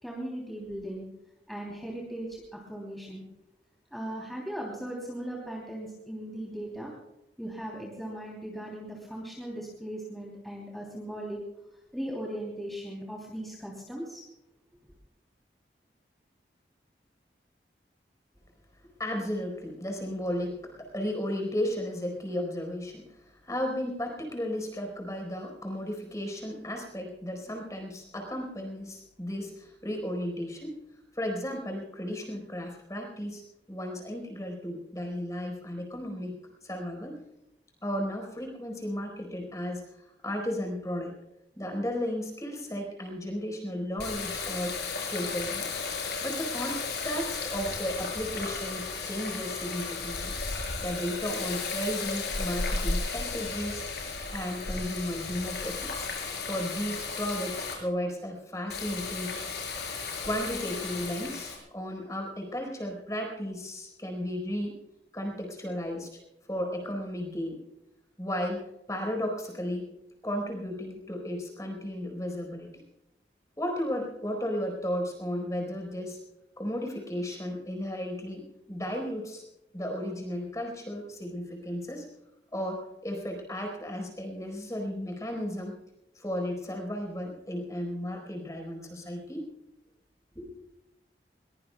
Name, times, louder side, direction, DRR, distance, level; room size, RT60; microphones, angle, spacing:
voice 1, 0.0-1.1 1.5-3.2 3.9-6.9 7.4-11.4 11.9-14.2, right 1 dB, ahead, -3 dB, 3.1 m, -38 dB
voice 2, 19.0-23.0 23.4-30.8 31.1-33.4 33.7-37.2 37.8-40.0 40.2-41.1 41.6-44.8 45.1-45.7 46.2-50.3 50.8-53.9 54.3-56.1 56.4-59.4 60.2-64.7 65.1-66.1 66.5-67.6 68.2-69.9 70.2-72.7 73.6-76.2 76.6-79.4 79.7-82.1 82.5-85.7 86.1-89.4 90.3-90.6, equal, 20° left, 2 dB, 4.4 m, -34 dB
Water tap faucet, 44.0-57.7 58.7-61.6, left 4 dB, 70° left, 6.4 m, -34 dB
22.0 x 22.0 x 2.3 m, 0.90 s
head